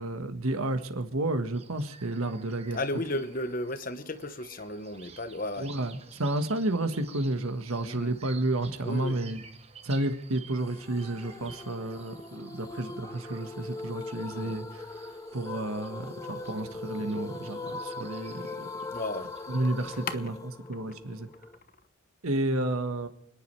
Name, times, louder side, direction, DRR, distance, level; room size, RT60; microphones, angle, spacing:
voice 1, 0.0-2.8 5.6-9.4 9.8-18.7 19.5-20.3 20.7-21.3 22.2-23.1, right 2 dB, 85° right, 1.4 m, -31 dB
sound 1, 1.5-20.2, right 5 dB, 30° right, 1.0 m, -52 dB
voice 2, 2.7-5.7 7.9-8.1 8.8-9.2 14.3-14.6 18.9-19.3 20.1-20.2, left 2 dB, 40° left, 1.0 m, -34 dB
sound 2, 10.6-21.6, left 3 dB, 15° left, 0.7 m, -41 dB
29.5 x 10.5 x 3.3 m
head